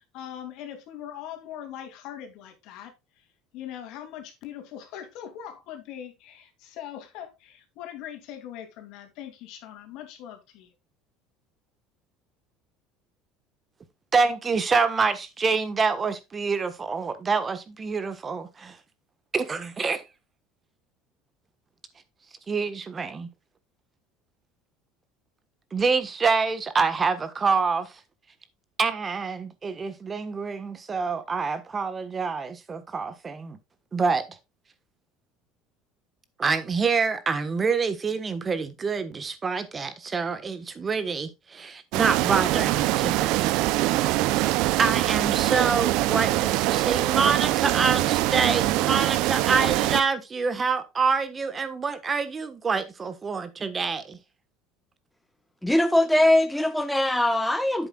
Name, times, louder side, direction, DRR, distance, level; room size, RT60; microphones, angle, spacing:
voice 1, 0.0-3.3 3.5-10.7, left 10 dB, 70° left, 2.8 m, -41 dB
voice 2, 14.1-18.8 19.3-20.0 22.5-23.3 25.7-27.9 28.8-33.6 33.9-34.2 36.4-43.5 44.4-54.2, right 4 dB, 30° right, 1.3 m, -26 dB
sound 1, 41.9-50.0, right 17 dB, 70° right, 0.6 m, -23 dB
voice 3, 55.6-57.9, left 1 dB, 5° left, 1.0 m, -21 dB
10.0 x 8.0 x 2.4 m
supercardioid pair, 95°, 0 cm